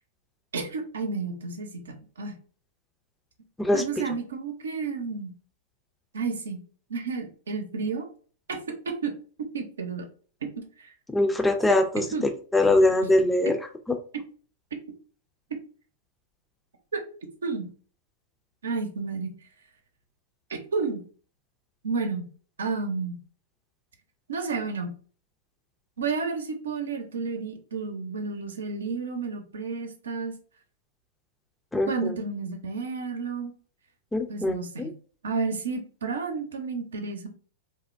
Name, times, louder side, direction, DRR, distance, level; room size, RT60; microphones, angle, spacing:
voice 1, 0.5-2.4 3.7-5.3 6.1-6.6 6.9-8.1 8.5-9.1 9.4-10.1 10.4-10.9 12.1-12.2 16.9-17.1 17.4-17.7 18.6-19.3 20.5-21.0 21.8-22.3 22.6-23.1 24.3-24.9 26.0-30.3 31.9-33.5 34.3-34.9 35.2-37.3, right 4 dB, 85° right, 6 dB, 0.7 m, -31 dB
voice 2, 11.1-13.6 31.7-32.1 34.1-34.9, left 2 dB, 10° left, 6 dB, 0.4 m, -23 dB
3.3 x 2.1 x 2.5 m, 0.42 s
hypercardioid pair, 115°, 0 cm